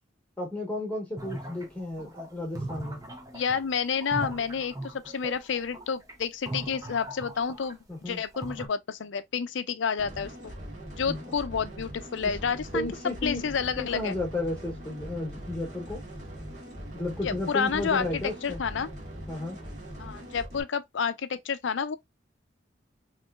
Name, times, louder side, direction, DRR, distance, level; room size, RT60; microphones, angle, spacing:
voice 1, 0.4-3.0 7.9-8.2 11.1-11.3 12.7-16.0 16.9-18.6 19.3-19.6, left 2 dB, 10° left, 1.4 m, -33 dB
sound 1, 1.2-7.9 8.2-8.7, right 1 dB, 20° right, 0.7 m, -39 dB
voice 2, 3.3-7.8 8.1-10.5 11.0-12.9 13.2-14.2 17.2-18.9 20.0-22.0, left 6 dB, 80° left, 0.5 m, -30 dB
sound 2, 10.0-20.6, equal, 40° right, 1.5 m, -41 dB
3.7 x 3.1 x 2.4 m
head